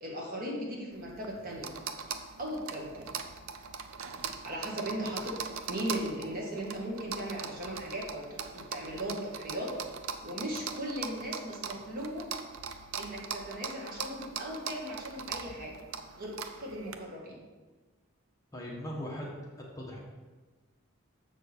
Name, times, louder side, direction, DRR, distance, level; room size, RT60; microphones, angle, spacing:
voice 1, 0.0-1.7 2.4-3.1 4.4-9.7 10.2-12.3 13.0-15.8 16.2-17.4, equal, 45° right, -3 dB, 1.7 m, -38 dB
sound 1, 0.9-17.0, right 6 dB, 75° right, 0.5 m, -41 dB
voice 2, 18.5-19.3 19.8-20.0, equal, 15° left, -3 dB, 1.1 m, -39 dB
7.1 x 6.1 x 4.4 m, 1.3 s
head